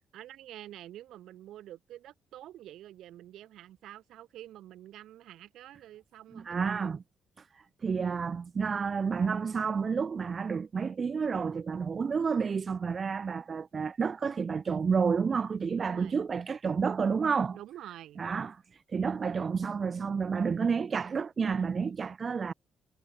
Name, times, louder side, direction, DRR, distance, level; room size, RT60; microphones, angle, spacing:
voice 1, 0.1-7.0 15.6-16.2 17.5-18.2, right 13 dB, 80° right, 1.9 m, -48 dB
voice 2, 6.3-7.0 7.8-17.6 18.2-18.6 18.9-22.5, right 5 dB, 40° right, 0.7 m, -30 dB
cardioid pair, 90°, 0 cm